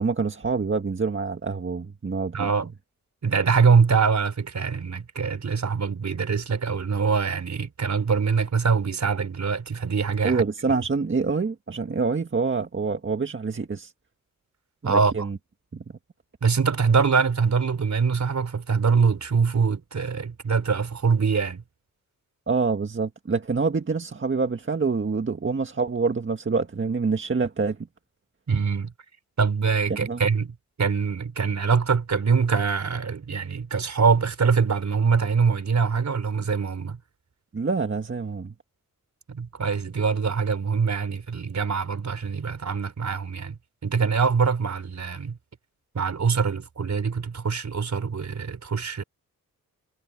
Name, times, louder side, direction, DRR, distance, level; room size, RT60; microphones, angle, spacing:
voice 1, 0.0-2.5 10.2-13.9 14.9-15.4 15.7-15.8 22.5-27.8 30.0-30.2 37.5-38.5, right 4 dB, 35° right, 1.8 m, -26 dB
voice 2, 2.3-2.7 3.2-10.4 10.7-10.8 14.8-15.1 16.4-21.6 28.5-28.9 29.4-37.0 39.3-45.4 45.9-49.0, right 5 dB, 55° right, 4.0 m, -23 dB
cardioid pair, 75°, 34 cm